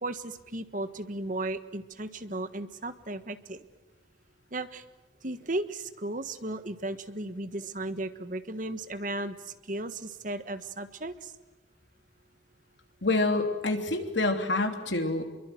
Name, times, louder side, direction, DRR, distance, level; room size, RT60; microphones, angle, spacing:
voice 1, 0.0-3.6 4.5-4.8 5.2-9.3 9.7-11.3, right 2 dB, 45° right, 11 dB, 1.5 m, -35 dB
voice 2, 13.0-15.2, left 2 dB, 75° left, 5 dB, 3.2 m, -27 dB
27.0 x 23.0 x 9.3 m, 1.1 s
head